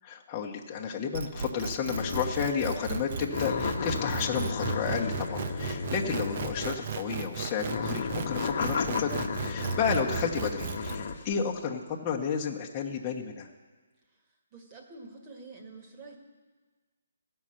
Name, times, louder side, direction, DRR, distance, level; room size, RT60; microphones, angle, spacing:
voice 1, 0.0-13.5, left 6 dB, 25° left, -1 dB, 1.1 m, -32 dB
sound 1, 1.1-11.0, right 6 dB, 45° right, 0.7 m, -35 dB
sound 2, 1.9-2.4 2.7-2.9 3.3-7.0 7.6-11.2, left 5 dB, 50° left, 1.1 m, -33 dB
voice 2, 14.5-16.2, right 3 dB, 25° right, 1 dB, 1.8 m, -47 dB
14.5 x 5.6 x 7.5 m, 1.3 s
hypercardioid pair, 155°, 0 cm